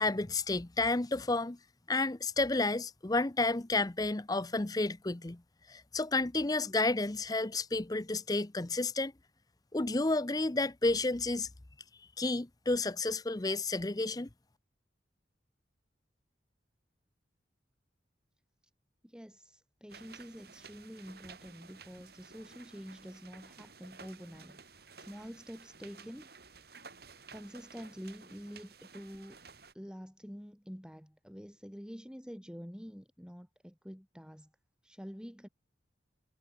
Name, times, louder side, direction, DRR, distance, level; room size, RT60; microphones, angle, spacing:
voice 1, 0.0-1.6 1.9-5.4 5.7-9.1 9.7-11.5 12.2-14.3, left 2 dB, 20° left, 0.6 m, -31 dB
voice 2, 19.0-26.3 27.3-29.4 29.7-34.5 34.8-35.5, equal, 5° right, 6.0 m, -47 dB
sound 1, 19.9-29.7, right 5 dB, 55° right, 7.4 m, -54 dB
head